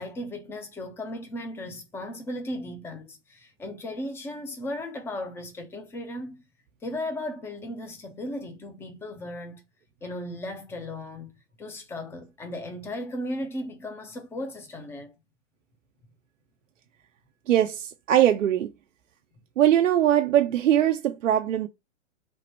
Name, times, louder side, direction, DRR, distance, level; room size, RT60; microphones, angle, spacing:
voice 1, 0.0-6.4 6.8-9.6 10.0-15.1, left 1 dB, 5° left, 0.4 m, -36 dB
voice 2, 17.5-18.7 19.6-21.7, right 11 dB, 90° right, 0.5 m, -21 dB
3.1 x 2.1 x 4.2 m
hypercardioid pair, 115°, 37 cm